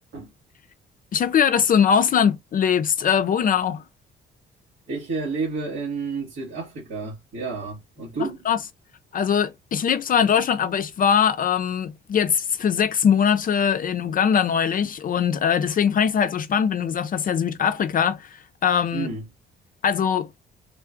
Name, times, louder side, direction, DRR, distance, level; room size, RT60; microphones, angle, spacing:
voice 1, 1.1-3.8 8.5-8.6 9.1-19.1 19.8-20.3, left 7 dB, 45° left, 0.4 m, -21 dB
voice 2, 4.9-8.4 18.9-19.3, right 4 dB, 85° right, 1.5 m, -30 dB
3.6 x 2.3 x 2.5 m
cardioid pair, 90°, 20 cm